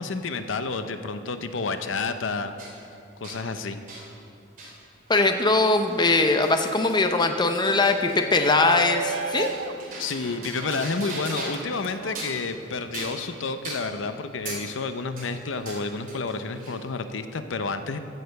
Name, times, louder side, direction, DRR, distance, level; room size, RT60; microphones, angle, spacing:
voice 1, 0.0-2.9 3.2-4.1 10.0-18.0, left 4 dB, 70° left, 9 dB, 0.6 m, -30 dB
sound 1, 2.6-2.8 3.2-3.4 3.9-4.1 4.6-4.8 5.1-11.7 12.0-12.5 12.9-13.3 13.6-13.9 14.5-14.7 15.2-16.8, right 2 dB, 45° right, 3.3 m, -39 dB
voice 2, 5.1-9.5, left 3 dB, 20° left, 6 dB, 0.6 m, -21 dB
Shout, 8.0-13.1, right 6 dB, 70° right, 0.4 m, -35 dB
15.0 x 6.7 x 6.5 m, 2.8 s
head